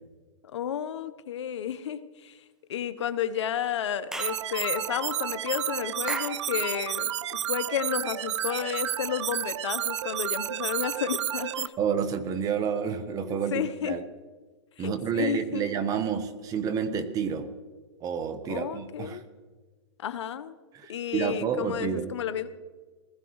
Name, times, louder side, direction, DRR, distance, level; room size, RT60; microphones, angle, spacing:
voice 1, 0.5-2.4 2.7-11.7 13.2-14.0 14.8-15.6 18.5-19.2 20.0-20.5 20.9-22.5, left 9 dB, 70° left, 12 dB, 1.0 m, -32 dB
Clapping / Chirp tweet, 4.1-4.4 6.1-6.4, right 1 dB, 5° right, 0.6 m, -35 dB
sound 1, 4.2-11.7, right 11 dB, 70° right, 0.5 m, -31 dB
voice 2, 11.8-14.0 14.8-17.5 18.0-19.2 20.7-22.1, right 7 dB, 25° right, 10 dB, 1.1 m, -29 dB
20.0 x 14.5 x 3.2 m, 1.4 s
hypercardioid pair, 140°, 15 cm